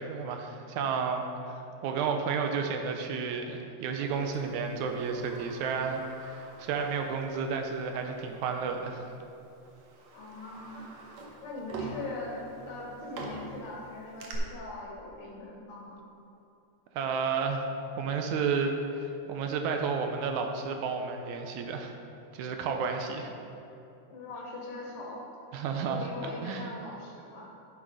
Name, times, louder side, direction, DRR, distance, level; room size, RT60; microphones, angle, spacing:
voice 1, 0.0-9.1 17.0-17.6 18.0-18.7 19.0-22.0 22.3-23.3 25.5-26.7, right 5 dB, 85° right, 4 dB, 2.1 m, -32 dB
Sliding door, 4.3-7.6 7.9-8.0 9.0-9.2 9.6-14.3, right 3 dB, 65° right, 2.1 m, -45 dB
voice 2, 10.1-10.8 11.4-16.1 24.1-25.3 25.9-27.6, left 2 dB, 70° left, -1 dB, 2.5 m, -41 dB
10.5 x 6.2 x 4.8 m, 2.8 s
omnidirectional pair, 3.4 m